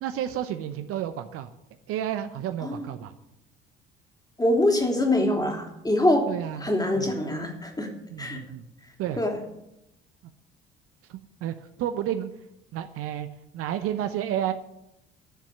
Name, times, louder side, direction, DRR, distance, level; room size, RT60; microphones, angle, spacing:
voice 1, 0.0-1.5 1.9-3.1 6.3-7.1 8.1-8.6 9.0-9.2 11.1-12.3 12.7-13.3 13.5-14.5, right 11 dB, 50° right, 9 dB, 0.8 m, -31 dB
voice 2, 4.4-6.2 6.6-7.9 8.2-8.4 9.2-9.4, left 1 dB, 15° left, 2 dB, 3.0 m, -24 dB
10.5 x 7.2 x 9.3 m, 0.85 s
figure-of-eight pair, 50°, 29 cm